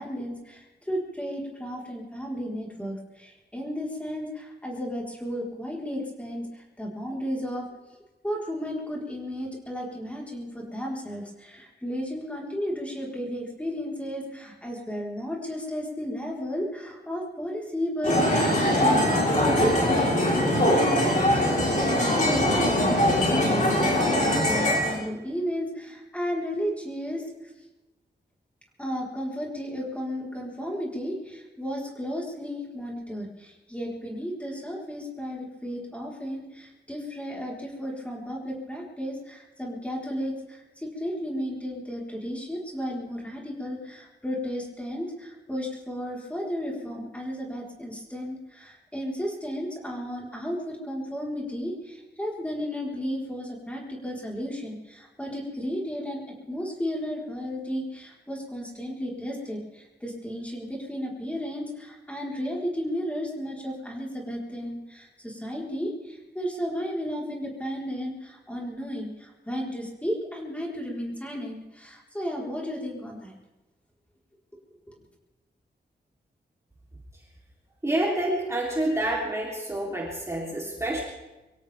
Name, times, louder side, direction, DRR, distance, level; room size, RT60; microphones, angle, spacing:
voice 1, 0.0-7.7 8.2-27.3 28.8-56.2 56.5-73.3, equal, 5° left, -3 dB, 4.3 m, -33 dB
sound 1, 18.0-25.0, left 1 dB, 45° left, 6.5 m, -22 dB
voice 2, 77.8-81.0, right 1 dB, 15° right, -3 dB, 3.5 m, -28 dB
24.0 x 17.0 x 3.6 m, 1.1 s
wide cardioid pair, 125°, 18 cm